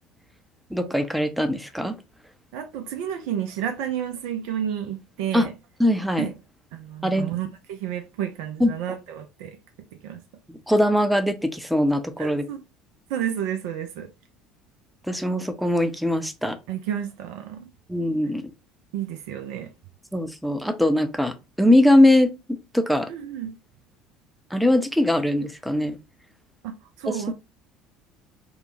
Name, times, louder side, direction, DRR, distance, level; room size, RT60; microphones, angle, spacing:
voice 1, 0.7-1.9 5.3-5.5 5.8-6.3 7.0-7.3 8.6-8.7 10.5-12.4 15.1-16.6 17.9-18.4 20.1-22.3 22.7-23.1 24.5-26.0, left 1 dB, ahead, 0.5 m, -21 dB
voice 2, 2.5-5.5 6.2-6.3 6.7-9.6 10.0-10.2 12.2-12.6 13.1-14.1 16.7-17.7 18.9-19.7 23.1-23.5 26.6-27.3, right 10 dB, 60° right, 0.4 m, -31 dB
3.1 x 2.1 x 2.6 m
figure-of-eight pair, 60°, 0 cm